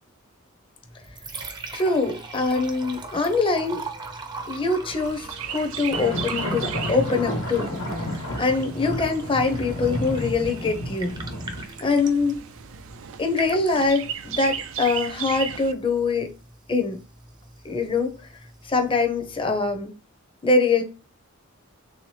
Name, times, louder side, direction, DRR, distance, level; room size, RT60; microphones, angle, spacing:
Liquid, 0.8-19.8, right 3 dB, 20° right, 0.6 m, -41 dB
voice 1, 1.7-3.8 4.5-7.7 8.1-11.1 11.8-12.4 13.2-16.3 16.7-17.0 17.6-18.1 18.6-19.9 20.4-20.8, left 3 dB, 25° left, 0.6 m, -23 dB
Chirp tweet, 4.9-15.7, right 8 dB, 70° right, 0.4 m, -37 dB
sound 1, 5.9-11.6, equal, 75° left, 1.1 m, -31 dB
3.5 x 2.8 x 3.1 m
head